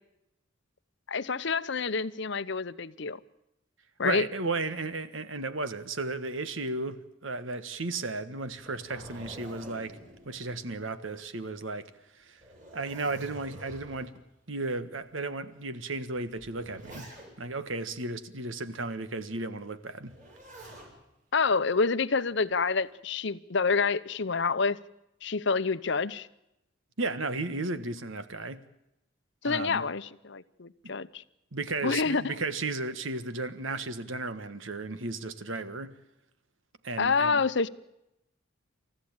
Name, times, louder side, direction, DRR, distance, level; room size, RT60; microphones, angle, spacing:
voice 1, 1.1-3.2 4.0-4.2 21.3-24.8 25.2-26.3 29.4-31.2 31.8-32.4 37.0-37.7, left 4 dB, 60° left, 0.8 m, -28 dB
voice 2, 4.0-10.0 10.2-11.9 12.2-12.4 12.7-14.1 14.5-17.1 17.4-20.1 27.0-28.6 29.4-29.8 31.5-35.9 36.8-37.4, right 3 dB, 75° right, 1.5 m, -34 dB
Zipper (clothing), 8.4-11.3 11.7-11.8 12.3-14.2 15.0-15.1 16.0-17.6 20.0-20.9 22.3-22.8, right 1 dB, 40° right, 7.6 m, -48 dB
28.5 x 14.5 x 9.0 m
head